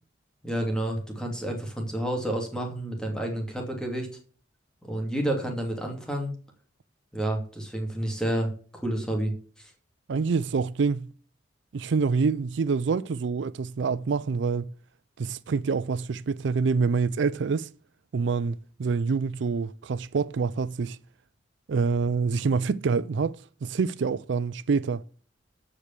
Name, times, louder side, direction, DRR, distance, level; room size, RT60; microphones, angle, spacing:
voice 1, 0.4-4.1 4.9-6.3 7.1-9.7, right 1 dB, 5° left, 2.6 m, -30 dB
voice 2, 10.1-11.1 11.7-14.7 15.2-17.7 18.1-21.0 21.7-25.0, right 5 dB, 70° right, 0.4 m, -26 dB
13.0 x 5.1 x 7.3 m
head